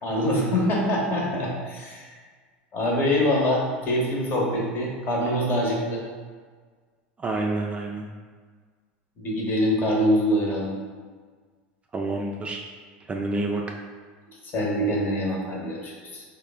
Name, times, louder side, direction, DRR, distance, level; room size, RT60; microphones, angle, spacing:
voice 1, 0.0-2.1 2.7-6.0 9.2-10.8 14.5-16.2, equal, 40° left, -2 dB, 0.9 m, -24 dB
voice 2, 7.2-8.1 11.9-12.6 13.1-13.6, right 2 dB, 20° right, 0 dB, 0.3 m, -28 dB
3.3 x 2.1 x 3.5 m, 1.6 s
hypercardioid pair, 100°, 5 cm